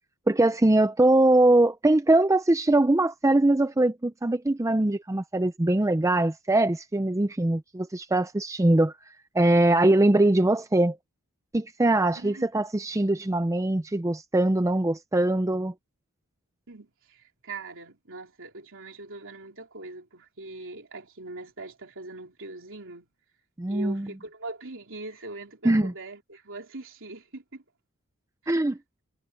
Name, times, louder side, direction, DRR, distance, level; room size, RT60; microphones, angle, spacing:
voice 1, 0.3-8.9 9.3-11.0 11.5-15.7 23.6-24.1 25.6-25.9 28.5-28.8, right 2 dB, 15° right, 0.5 m, -22 dB
voice 2, 12.1-12.5 16.7-23.1 23.7-27.6 28.4-28.5, right 2 dB, 60° right, 3.7 m, -41 dB
head